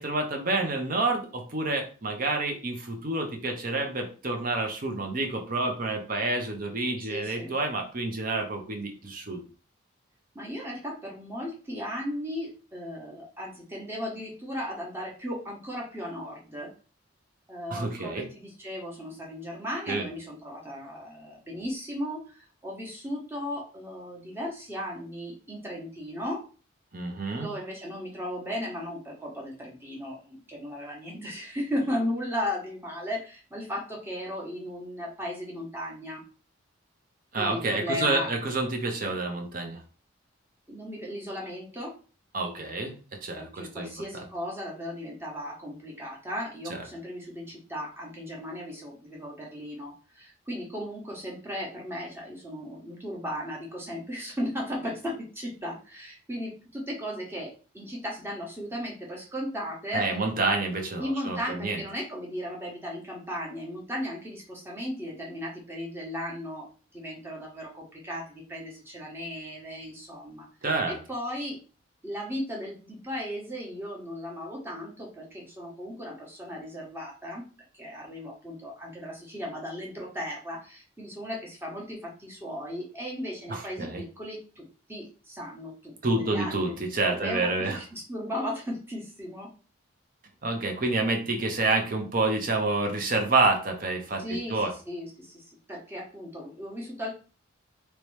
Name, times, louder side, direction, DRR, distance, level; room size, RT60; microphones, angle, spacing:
voice 1, 0.0-9.4 17.7-18.3 19.9-20.1 26.9-27.5 37.3-39.8 42.3-42.9 43.2-44.2 46.7-46.8 59.9-61.8 70.6-71.0 83.5-84.0 86.0-87.8 90.4-94.7, right 2 dB, 45° right, 3 dB, 0.8 m, -28 dB
voice 2, 7.1-7.5 10.3-16.7 17.5-26.4 27.4-36.2 37.3-38.3 40.7-41.9 43.3-60.0 61.0-70.5 70.9-71.6 72.0-77.4 77.7-86.7 87.0-89.5 94.2-97.1, equal, 10° right, -3 dB, 1.0 m, -36 dB
3.0 x 2.9 x 3.2 m, 0.37 s
head